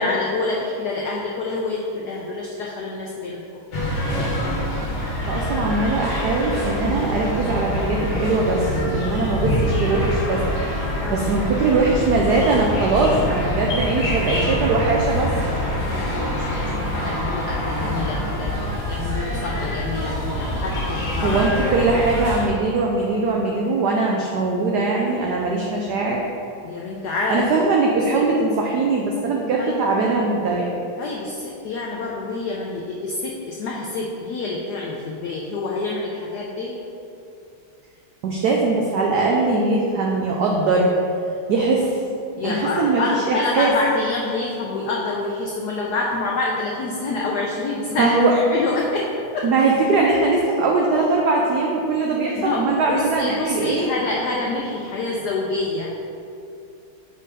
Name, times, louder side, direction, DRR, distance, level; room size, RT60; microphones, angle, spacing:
voice 1, 0.0-3.4 11.0-11.2 15.9-21.5 21.9-22.0 26.6-27.5 29.6-29.8 31.0-36.8 42.4-49.5 52.4-55.9, left 3 dB, 85° left, -2 dB, 0.9 m, -27 dB
sound 1, 3.7-22.5, left 1 dB, 60° left, 1.9 m, -25 dB
voice 2, 5.2-15.3 21.2-26.2 27.3-30.7 38.2-40.9 41.5-42.0 42.4-43.7 48.0-48.3 49.4-53.9, right 3 dB, 90° right, -1 dB, 0.9 m, -21 dB
5.3 x 4.4 x 4.8 m, 2.6 s
omnidirectional pair, 2.4 m